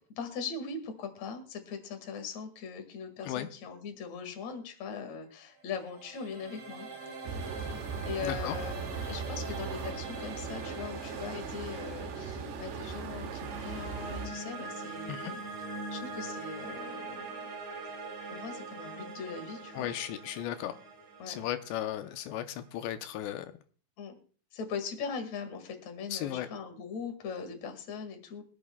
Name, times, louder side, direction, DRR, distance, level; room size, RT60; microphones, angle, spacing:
voice 1, 0.2-6.9 7.6-15.4 15.9-17.3 18.3-19.9 21.2-21.4 24.0-24.2 24.5-28.4, left 5 dB, 50° left, 6 dB, 2.5 m, -40 dB
sound 1, 5.6-22.7, right 3 dB, 45° right, 3.8 m, -43 dB
sound 2, 7.2-14.3, right 5 dB, 90° right, 3.6 m, -39 dB
voice 2, 8.2-8.6 15.1-15.3 19.7-20.7 21.3-23.5 26.1-26.5, left 12 dB, 85° left, 8 dB, 2.9 m, -35 dB
25.0 x 8.6 x 2.2 m, 0.40 s
omnidirectional pair, 5.0 m